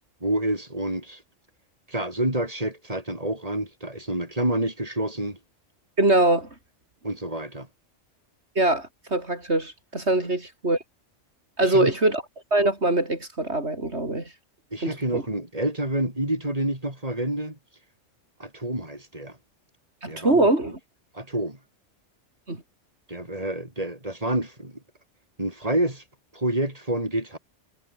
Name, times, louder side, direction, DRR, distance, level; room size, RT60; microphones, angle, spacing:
voice 1, 0.2-1.2 1.9-5.4 7.0-7.7 11.7-11.9 14.7-17.6 18.4-19.4 20.0-20.5 21.1-21.6 23.1-24.8 25.4-26.0 26.3-27.4, right 1 dB, 30° right, 6.3 m, -28 dB
voice 2, 6.0-6.5 8.6-10.8 11.6-12.2 12.5-14.3 14.8-15.2 20.0-20.8 22.5-22.6, right 2 dB, 65° right, 5.3 m, -23 dB
omnidirectional pair, 1.2 m